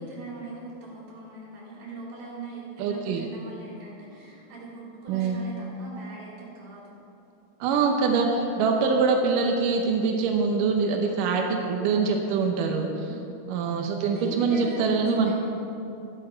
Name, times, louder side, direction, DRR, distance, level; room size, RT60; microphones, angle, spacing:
voice 1, 0.0-6.9 13.0-13.3 14.1-15.4, right 3 dB, 55° right, -6 dB, 4.6 m, -40 dB
voice 2, 2.8-3.3 5.1-5.4 7.6-13.1 13.5-15.4, right 4 dB, 75° right, 2 dB, 2.0 m, -24 dB
13.0 x 12.0 x 4.5 m, 2.8 s
omnidirectional pair, 4.6 m